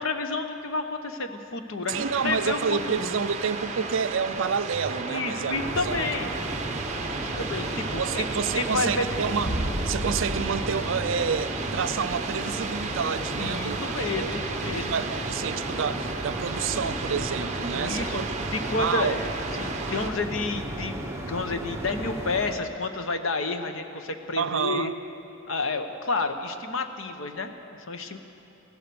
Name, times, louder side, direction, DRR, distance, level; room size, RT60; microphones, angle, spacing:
voice 1, 0.0-3.1 5.1-6.3 7.1-8.3 8.5-9.1 13.4-15.0 17.7-18.3 18.5-19.3 19.6-24.9 25.5-28.2, left 3 dB, 70° left, 8 dB, 0.9 m, -30 dB
sound 1, 1.9-20.1, right 4 dB, 35° right, 0.9 m, -34 dB
voice 2, 1.9-5.6 5.8-6.0 8.0-9.6 9.9-13.8 14.2-18.4 18.8-19.2 24.4-24.9, right 6 dB, 65° right, 12 dB, 0.5 m, -29 dB
sound 2, 5.5-22.5, right 1 dB, 15° right, 1.1 m, -34 dB
sound 3, 9.4-12.0, right 1 dB, 20° left, 1.5 m, -33 dB
16.0 x 12.0 x 6.9 m, 3.0 s
head